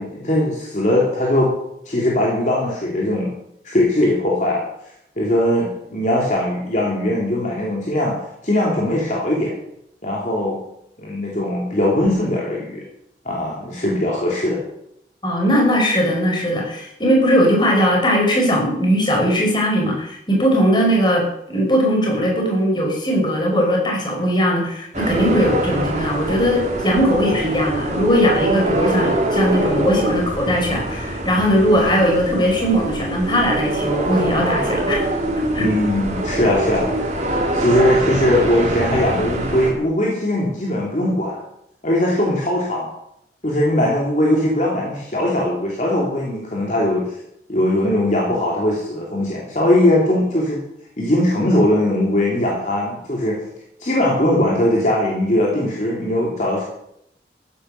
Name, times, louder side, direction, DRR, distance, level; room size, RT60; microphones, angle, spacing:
voice 1, 0.0-1.5 1.8-3.3 3.6-4.6 5.2-8.2 8.4-9.5 10.0-10.6 11.0-12.8 13.2-14.6 35.6-36.9 37.5-41.4 41.8-42.9 43.4-47.1 47.5-50.6 51.0-53.4 53.8-56.6, left 1 dB, 45° left, -3 dB, 3.0 m, -20 dB
voice 2, 15.2-35.1 35.5-35.6, equal, 25° left, 0 dB, 4.8 m, -19 dB
sound 1, 24.9-39.7, right 1 dB, 40° right, 2.8 m, -24 dB
14.5 x 10.0 x 6.6 m, 0.77 s
head